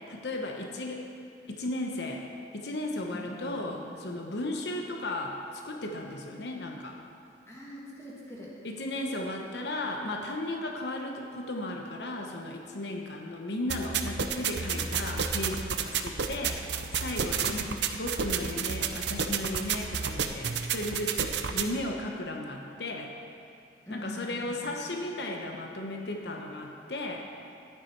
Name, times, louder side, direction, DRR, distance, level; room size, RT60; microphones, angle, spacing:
voice 1, 0.1-1.0 1.5-2.2 2.5-5.4 5.6-7.0 8.6-17.7 18.0-23.1 23.9-27.3, left 1 dB, 70° left, 1 dB, 0.9 m, -35 dB
voice 2, 3.1-3.8 7.5-8.5 17.4-17.7 23.9-24.8, equal, 15° left, -5 dB, 1.9 m, -43 dB
sound 1, 13.7-21.7, right 6 dB, 80° right, 0.7 m, -31 dB
13.5 x 9.4 x 4.6 m, 2.5 s
head